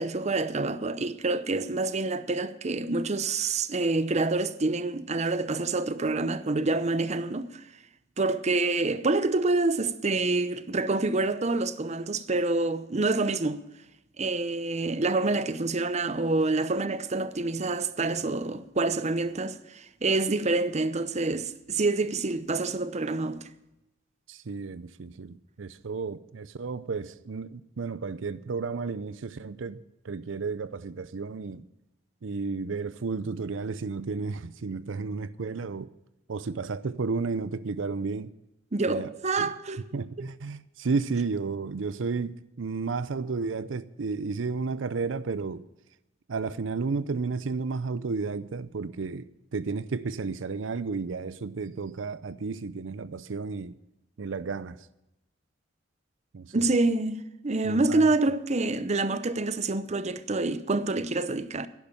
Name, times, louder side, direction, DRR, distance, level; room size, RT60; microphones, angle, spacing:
voice 1, 0.0-7.6 8.2-13.6 14.2-23.5 38.7-39.8 40.2-40.3 56.5-61.7, right 3 dB, 35° right, 0.7 m, -27 dB
voice 2, 24.3-31.7 32.2-35.9 36.3-38.3 38.9-39.1 39.4-39.5 39.9-45.7 46.3-53.8 54.2-54.9 56.3-56.7 57.6-58.1, right 4 dB, 85° right, 0.6 m, -32 dB
11.0 x 10.5 x 7.1 m
head